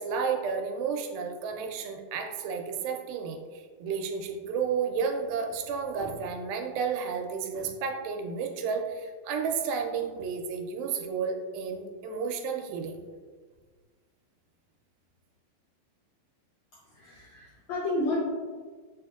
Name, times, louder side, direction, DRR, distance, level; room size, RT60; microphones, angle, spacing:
voice 1, 0.0-13.0, right 6 dB, 90° right, 4 dB, 2.4 m, -32 dB
voice 2, 16.7-18.2, left 2 dB, 85° left, -6 dB, 1.6 m, -32 dB
6.2 x 3.5 x 2.3 m, 1.5 s
omnidirectional pair, 4.1 m